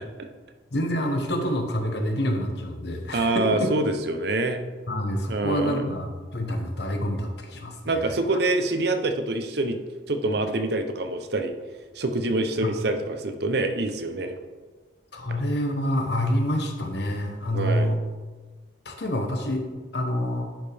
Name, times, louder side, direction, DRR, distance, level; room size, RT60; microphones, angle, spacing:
voice 1, 0.7-3.7 4.9-8.1 12.6-12.7 15.1-18.0 18.8-19.6 19.9-20.5, equal, 60° left, 3 dB, 1.0 m, -27 dB
voice 2, 3.1-4.6 5.3-5.8 7.8-9.8 10.1-11.5 11.9-14.4 17.5-17.9, right 2 dB, 55° right, 7 dB, 0.7 m, -26 dB
10.5 x 5.3 x 3.4 m, 1.3 s
head